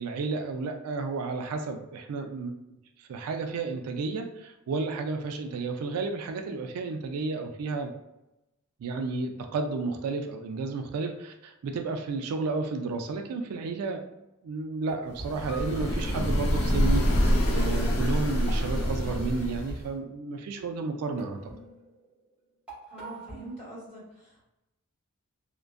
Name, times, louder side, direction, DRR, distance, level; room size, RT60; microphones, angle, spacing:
voice 1, 0.0-7.9 8.8-21.4, right 3 dB, 90° right, 5 dB, 0.3 m, -32 dB
sound 1, 14.7-16.0 17.0-17.1 17.3-20.0 20.6-20.9 21.2-22.2 22.7-23.8, right 1 dB, 5° right, 1.2 m, -44 dB
sound 2, 15.2-19.9, equal, 80° left, 0.6 m, -26 dB
voice 2, 22.9-24.4, right 1 dB, 30° left, -8 dB, 1.5 m, -44 dB
2.5 x 2.2 x 2.4 m, 0.93 s
head